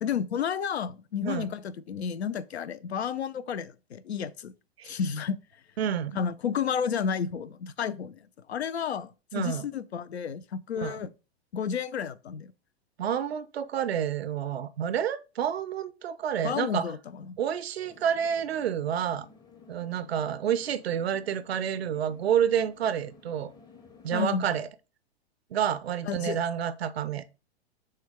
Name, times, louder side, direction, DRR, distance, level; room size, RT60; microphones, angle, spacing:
voice 1, 0.0-4.5 4.8-5.4 6.1-8.2 8.5-11.1 11.5-12.5 16.4-17.0 17.3-17.4 24.1-24.5 26.1-26.4, left 7 dB, 85° left, 0.5 m, -31 dB
voice 2, 5.8-6.2 9.3-9.7 10.7-11.0 13.0-16.9 17.4-19.3 19.7-23.5 24.0-24.7 25.5-27.2, right 9 dB, 75° right, 0.5 m, -29 dB
sound 1, 17.8-24.7, left 5 dB, 15° left, 0.6 m, -54 dB
6.3 x 2.2 x 3.5 m
figure-of-eight pair, 105°, 32 cm